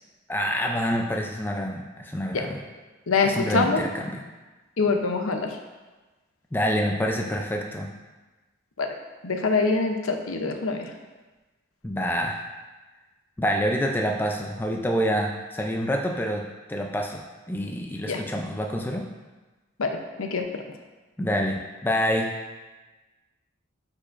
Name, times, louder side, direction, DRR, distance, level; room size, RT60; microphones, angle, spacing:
voice 1, 0.3-2.6 3.2-4.2 6.5-7.9 11.8-12.4 13.4-16.4 16.7-19.0 21.2-22.3, equal, 10° left, 2 dB, 0.4 m, -27 dB
voice 2, 3.1-3.9 4.8-5.5 8.8-8.9 9.2-10.9 18.0-18.2 19.8-20.6, left 4 dB, 90° left, 4 dB, 0.7 m, -25 dB
8.5 x 4.9 x 2.5 m, 1.2 s
head